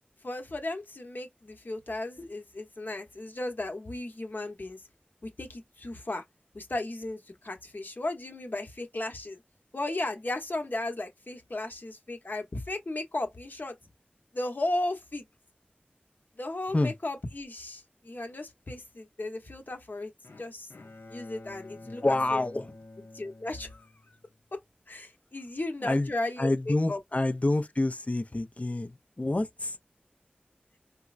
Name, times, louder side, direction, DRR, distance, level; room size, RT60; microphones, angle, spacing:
voice 1, 0.2-4.8 5.2-6.2 6.5-9.4 9.7-13.7 14.3-15.2 16.4-20.1 20.4-20.7 21.1-22.4 23.1-23.9 24.9-27.0, left 2 dB, 60° left, 1.0 m, -35 dB
Bowed string instrument, 20.2-24.5, left 2 dB, 85° left, 0.6 m, -49 dB
voice 2, 21.8-22.7 25.8-26.1 26.4-29.8, left 2 dB, 40° left, 0.5 m, -28 dB
4.4 x 2.1 x 2.4 m
wide cardioid pair, 45°, 4 cm